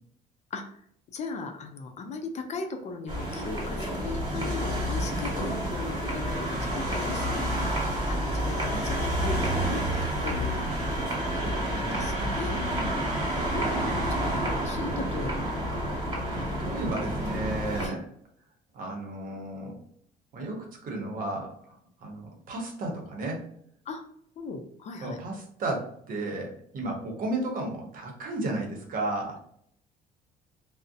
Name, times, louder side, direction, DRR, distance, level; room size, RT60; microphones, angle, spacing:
voice 1, 1.1-9.8 10.2-10.6 11.6-13.1 13.5-15.5 17.7-18.0 23.9-24.0 24.4-25.2, left 3 dB, 40° left, 5 dB, 0.4 m, -37 dB
sound 1, 3.1-17.9, right 1 dB, 25° right, 1.3 m, -29 dB
voice 2, 11.4-12.1 13.5-13.8 16.3-18.0 18.7-19.7 20.3-23.4 25.0-29.4, right 2 dB, 55° right, 1 dB, 0.8 m, -34 dB
2.5 x 2.0 x 2.5 m, 0.68 s
cardioid pair, 110°, 17 cm